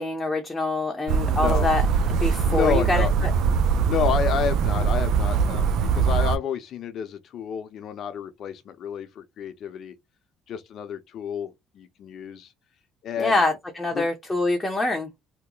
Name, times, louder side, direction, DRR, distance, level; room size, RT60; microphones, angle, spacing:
voice 1, 0.0-1.8 2.1-3.3 13.2-15.1, left 2 dB, 15° left, 0.7 m, -25 dB
sound 1, 1.1-6.4, right 6 dB, 70° right, 0.4 m, -22 dB
voice 2, 1.3-1.7 2.4-3.1 3.9-9.9 10.5-12.5 13.0-13.4 13.9-14.1, left 8 dB, 55° left, 0.7 m, -30 dB
2.9 x 2.1 x 3.8 m
cardioid pair, 115°, 0 cm